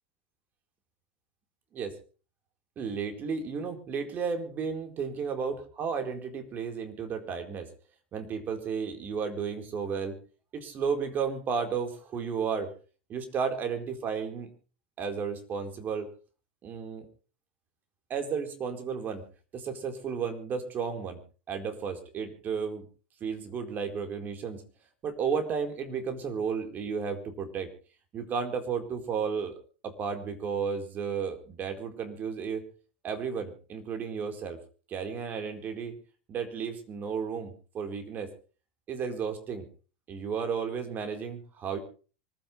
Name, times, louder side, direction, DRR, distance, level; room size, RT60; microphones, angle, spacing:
voice 1, 2.8-7.7 8.1-10.2 10.5-12.7 13.1-14.5 15.0-16.1 16.6-17.0 18.1-19.2 19.5-21.2 21.5-22.9 23.2-24.6 25.0-27.7 28.1-29.5 29.8-32.6 33.0-34.6 34.9-35.9 36.3-38.3 38.9-39.6 40.1-41.8, right 6 dB, 35° right, 5 dB, 4.2 m, -33 dB
25.0 x 15.0 x 3.3 m, 0.38 s
hypercardioid pair, 90°, 5 cm